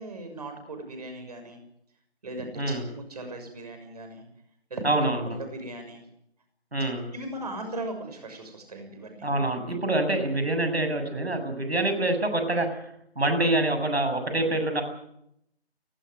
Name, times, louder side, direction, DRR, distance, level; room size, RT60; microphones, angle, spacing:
voice 1, 0.0-1.6 2.2-4.3 4.7-6.0 7.1-9.3, right 1 dB, 35° right, 6 dB, 6.6 m, -38 dB
voice 2, 4.8-5.4 6.7-7.1 9.2-12.7 13.2-14.8, right 2 dB, 70° right, 7 dB, 7.5 m, -26 dB
19.5 x 18.0 x 9.3 m, 0.75 s
figure-of-eight pair, 160°, 33 cm